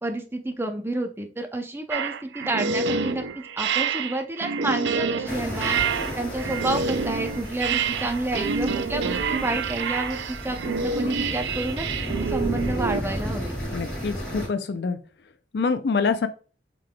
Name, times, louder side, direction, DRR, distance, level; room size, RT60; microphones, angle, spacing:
voice 1, 0.0-11.8 12.2-13.5, right 2 dB, 15° right, 4 dB, 0.5 m, -29 dB
sound 1, 1.9-13.0, right 5 dB, 75° right, 0.4 m, -28 dB
sound 2, 5.3-14.5, equal, 5° left, 2.0 m, -33 dB
voice 2, 13.7-15.0 15.5-16.3, left 4 dB, 65° left, 10 dB, 0.4 m, -25 dB
4.9 x 3.8 x 2.2 m, 0.36 s
head